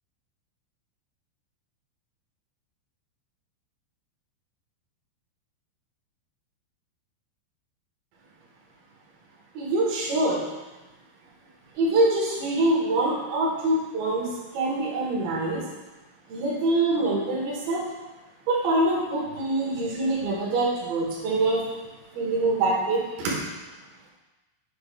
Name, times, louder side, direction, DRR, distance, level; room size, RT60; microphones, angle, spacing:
voice 1, 9.5-10.4 11.8-15.7 16.3-17.8 18.5-21.8 22.1-23.4, right 2 dB, 65° right, -4 dB, 2.5 m, -25 dB
8.2 x 5.3 x 2.3 m, 1.1 s
omnidirectional pair, 5.6 m